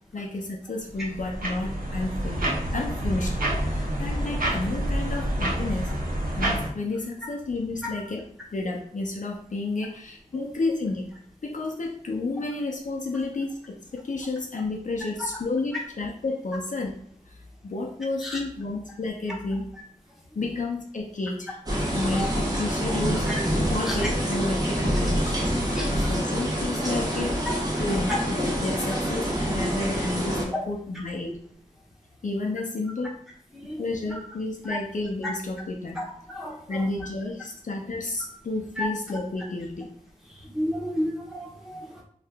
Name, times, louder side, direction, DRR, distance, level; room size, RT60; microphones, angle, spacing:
voice 1, 0.1-6.0 6.3-8.2 8.5-11.1 11.4-17.0 17.3-17.4 17.6-19.7 20.3-21.6 21.9-23.2 23.7-25.5 25.9-27.4 27.8-31.4 32.2-33.2 33.8-36.1 36.7-39.9, left 2 dB, 65° left, 0 dB, 0.5 m, -31 dB
sound 1, 0.9-6.7, right 1 dB, 85° right, 0.8 m, -28 dB
sound 2, 21.7-30.4, equal, 25° right, 0.9 m, -26 dB
voice 2, 25.7-26.1 27.5-27.6 28.1-28.2 29.7-29.8 33.5-33.8 34.7-34.8 36.3-36.8 38.8-38.9 40.5-42.0, left 1 dB, ahead, -4 dB, 1.0 m, -31 dB
2.8 x 2.4 x 3.4 m, 0.63 s
wide cardioid pair, 65°, 14 cm